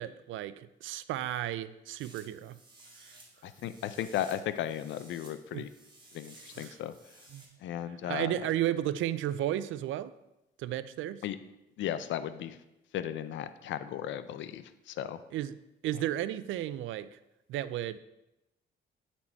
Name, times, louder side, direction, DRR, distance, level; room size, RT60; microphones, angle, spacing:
voice 1, 0.0-2.6 3.0-3.2 5.5-5.6 6.6-6.7 7.3-7.5 8.0-10.1 10.6-11.2 15.3-15.5 15.8-17.1 17.5-18.0, right 12 dB, 80° right, 15 dB, 0.4 m, -33 dB
sound 1, 2.0-7.5, right 2 dB, 25° right, 1.9 m, -56 dB
voice 2, 3.4-5.7 6.1-6.9 7.6-8.4 11.2-11.4 11.8-12.6 12.9-15.2, left 11 dB, 70° left, 13 dB, 0.5 m, -35 dB
8.5 x 4.3 x 4.4 m, 0.92 s
cardioid pair, 90°, 20 cm